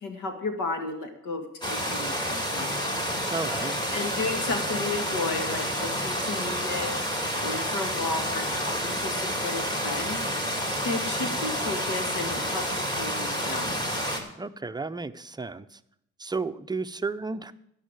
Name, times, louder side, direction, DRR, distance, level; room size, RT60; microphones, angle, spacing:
voice 1, 0.0-2.9 3.9-6.9 7.4-10.2 10.8-13.8, left 3 dB, 85° left, 6 dB, 2.1 m, -33 dB
sound 1, 1.6-14.2, equal, 15° left, 2.3 m, -29 dB
voice 2, 3.3-3.8 14.4-15.8 16.2-17.5, right 3 dB, 15° right, 11 dB, 0.6 m, -33 dB
12.0 x 5.7 x 8.9 m, 0.76 s
cardioid pair, 90°, 30 cm